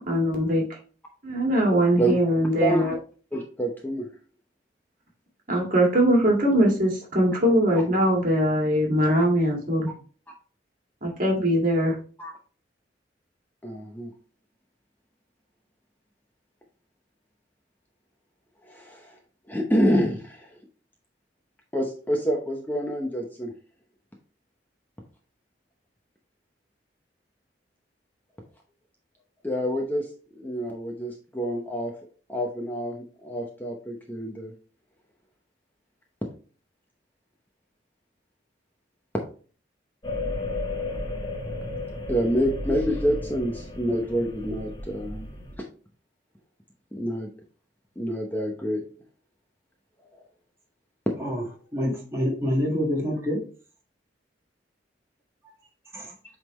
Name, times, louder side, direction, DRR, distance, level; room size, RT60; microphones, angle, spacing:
voice 1, 0.1-0.7 1.2-3.0 5.5-9.9 11.0-12.0, equal, 50° right, -1 dB, 2.0 m, -21 dB
voice 2, 2.6-3.0 3.3-4.1 12.2-12.3 13.6-14.1 18.7-19.2 19.5-20.4 21.7-23.5 29.4-30.1 30.3-31.9 32.3-34.5 42.1-45.3 46.9-47.3 48.0-48.8, equal, 10° left, 1 dB, 0.8 m, -27 dB
sound 1, 40.0-45.6, left 2 dB, 25° left, 1.1 m, -33 dB
voice 3, 51.7-53.4 55.9-56.1, equal, 15° right, -2 dB, 1.8 m, -26 dB
8.0 x 3.7 x 3.1 m, 0.39 s
head